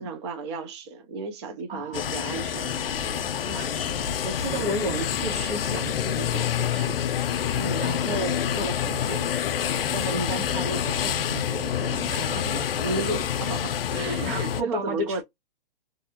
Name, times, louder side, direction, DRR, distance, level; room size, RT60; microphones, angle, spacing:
voice 1, 0.0-2.7 4.5-4.7 7.6-7.9 10.1-10.4 12.1-12.4 12.8-15.2, right 2 dB, 30° right, 0.4 m, -33 dB
voice 2, 1.7-2.0 3.5-3.7 4.2-7.0 7.8-9.3 9.9-12.6 13.9-15.2, right 2 dB, 70° right, 1.4 m, -34 dB
sound 1, 1.9-14.6, left 9 dB, 80° left, 0.5 m, -27 dB
sound 2, 2.5-13.4, left 2 dB, 10° right, 1.2 m, -41 dB
2.6 x 2.4 x 2.7 m
hypercardioid pair, 150°, 29 cm